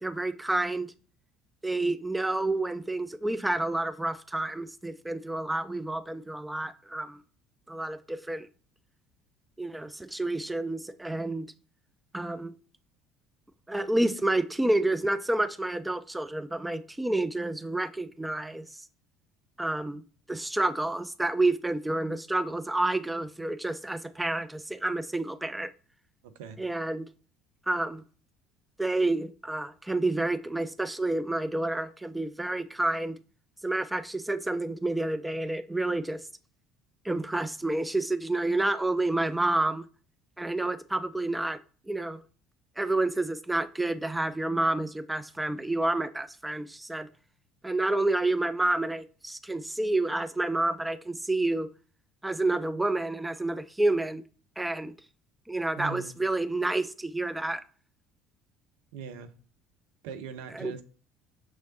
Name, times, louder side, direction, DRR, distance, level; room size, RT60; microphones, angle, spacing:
voice 1, 0.0-0.9 1.6-7.2 7.7-8.5 9.6-11.5 12.1-12.5 13.7-18.6 19.6-20.0 20.3-25.7 26.6-27.0 27.7-28.0 28.8-33.2 33.6-36.2 37.0-39.8 40.4-41.6 41.9-42.2 42.8-47.1 47.6-51.7 52.2-54.2 54.6-54.9 55.5-57.6 60.5-60.7, right 2 dB, 10° right, 0.3 m, -29 dB
voice 2, 55.8-56.2 58.9-59.3 60.0-60.8, right 6 dB, 65° right, 0.5 m, -39 dB
6.2 x 3.1 x 2.8 m
figure-of-eight pair, 60°, 0 cm